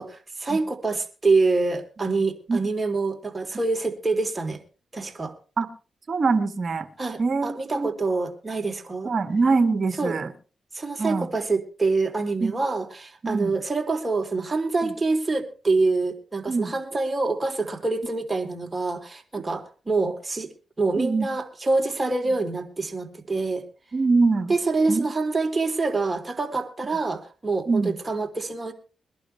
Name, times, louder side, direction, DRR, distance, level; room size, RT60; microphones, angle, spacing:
voice 1, 0.0-4.6 4.9-5.3 7.0-9.1 10.0-10.2 10.7-20.5 20.8-23.6 24.5-28.7, right 3 dB, 30° right, 4 dB, 3.4 m, -26 dB
voice 2, 6.1-6.9 7.2-7.9 9.0-10.3 11.0-11.3 12.4-12.6 13.2-13.5 14.8-14.9 16.5-16.7 21.0-21.3 23.9-24.5 24.9-25.0 27.7-27.9, right 4 dB, 55° right, 10 dB, 1.8 m, -23 dB
22.5 x 11.5 x 3.4 m, 0.34 s
supercardioid pair, 50°, 0 cm